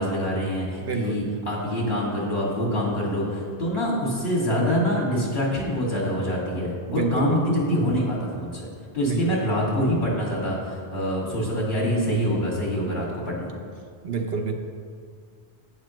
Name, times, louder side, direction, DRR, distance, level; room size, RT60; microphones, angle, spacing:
voice 1, 0.0-8.7 8.9-13.5, equal, 65° left, -4 dB, 2.6 m, -25 dB
voice 2, 0.8-1.2 6.9-7.3 9.0-9.2 14.0-14.5, right 4 dB, 65° right, 4 dB, 1.0 m, -27 dB
11.0 x 8.6 x 3.2 m, 2.1 s
omnidirectional pair, 1.1 m